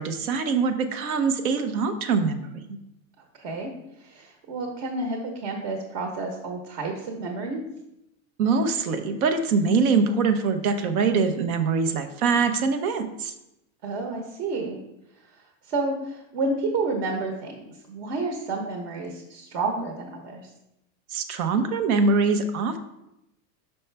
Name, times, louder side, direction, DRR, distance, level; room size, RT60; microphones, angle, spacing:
voice 1, 0.0-2.8 8.4-13.3 21.1-22.8, right 4 dB, 90° right, 7 dB, 0.9 m, -23 dB
voice 2, 3.3-3.7 4.0-7.6 13.8-14.8 15.6-20.5, right 3 dB, 65° right, 2 dB, 1.2 m, -30 dB
5.7 x 5.4 x 3.4 m, 0.87 s
supercardioid pair, 135°, 42 cm